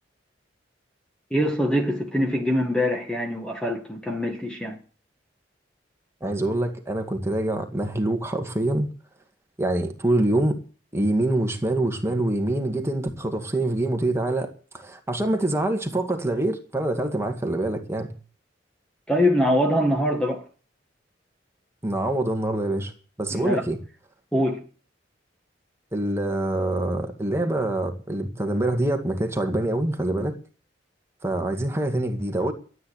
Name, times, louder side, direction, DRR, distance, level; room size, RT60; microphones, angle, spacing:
voice 1, 1.3-4.8 19.1-20.4 23.3-23.6 24.3-24.6, equal, 5° left, 1.5 m, -23 dB
voice 2, 6.2-8.9 9.6-10.6 10.9-18.1 21.8-22.9 23.2-23.8 25.9-30.4 31.2-32.5, right 1 dB, 15° right, 2.0 m, -25 dB
13.5 x 8.9 x 8.0 m
head